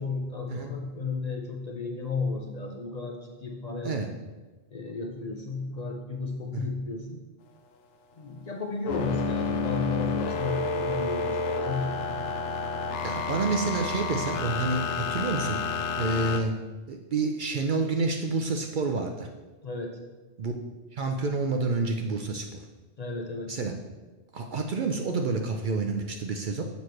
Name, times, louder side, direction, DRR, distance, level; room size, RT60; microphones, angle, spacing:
voice 1, 0.0-4.0 4.7-7.2 8.2-12.1 19.6-20.0 23.0-23.6, left 4 dB, 45° left, 2 dB, 0.6 m, -33 dB
sound 1, 8.9-16.4, left 4 dB, 85° left, 0.9 m, -30 dB
voice 2, 13.0-15.6 16.0-16.5 16.9-19.3 20.4-20.5 20.9-22.6 23.5-23.7 24.3-26.6, right 3 dB, 55° right, 4 dB, 0.6 m, -29 dB
6.9 x 3.1 x 5.8 m, 1.2 s
omnidirectional pair, 1.2 m